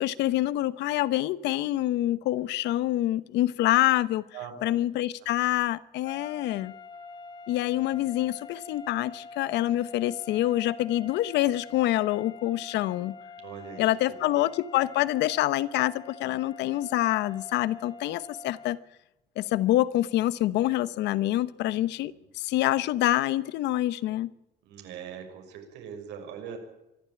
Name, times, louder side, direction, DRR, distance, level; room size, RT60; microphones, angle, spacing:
voice 1, 0.0-4.2 4.6-6.7 7.5-13.1 13.8-18.8 19.4-24.3, left 15 dB, 80° left, 1.0 m, -26 dB
voice 2, 4.3-4.7 13.4-14.4 21.6-22.2 24.6-26.6, right 7 dB, 90° right, 6.2 m, -42 dB
sound 1, 6.0-18.9, left 3 dB, 25° left, 1.3 m, -46 dB
25.0 x 13.0 x 8.9 m
cardioid pair, 160°, 18 cm